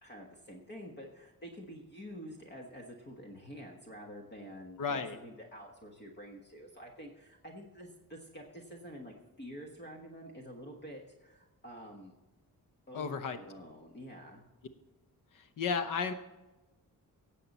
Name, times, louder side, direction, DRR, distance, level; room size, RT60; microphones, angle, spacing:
voice 1, 0.0-12.1 12.9-14.4, equal, 30° left, 1 dB, 1.3 m, -48 dB
voice 2, 4.8-5.2 12.9-13.4 15.3-16.1, left 5 dB, 60° left, 10 dB, 0.9 m, -33 dB
17.0 x 7.6 x 4.2 m, 1.1 s
wide cardioid pair, 155°, 35 cm